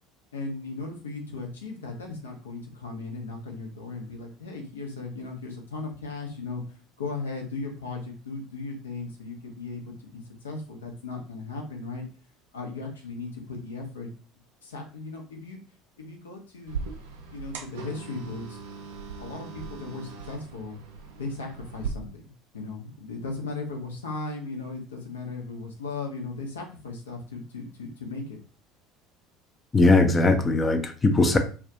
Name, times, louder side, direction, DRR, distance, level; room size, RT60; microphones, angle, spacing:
voice 1, 0.3-12.0 12.5-14.1 14.6-15.6 16.0-16.8 17.3-18.6 19.2-20.8 21.2-22.1 22.5-28.4, left 3 dB, 80° left, 2 dB, 0.6 m, -37 dB
sound 1, 16.7-21.9, right 5 dB, 75° right, 0.5 m, -39 dB
voice 2, 29.7-31.4, left 2 dB, 20° left, 7 dB, 0.4 m, -20 dB
2.3 x 2.1 x 2.7 m, 0.37 s
figure-of-eight pair, 65°, 0 cm